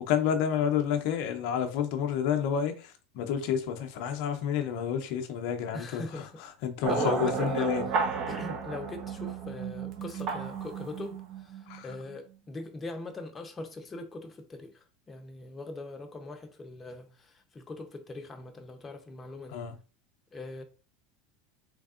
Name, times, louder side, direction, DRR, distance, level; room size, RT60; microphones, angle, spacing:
voice 1, 0.1-6.2 6.6-7.8 11.7-11.9 19.5-19.7, left 8 dB, 65° left, 0.5 m, -29 dB
voice 2, 5.7-6.3 6.9-7.8 8.3-19.6 20.3-20.6, left 2 dB, 20° left, 0.7 m, -41 dB
sound 1, 6.8-12.2, right 5 dB, 50° right, 1.0 m, -33 dB
3.5 x 3.3 x 2.4 m
supercardioid pair, 115°, 0 cm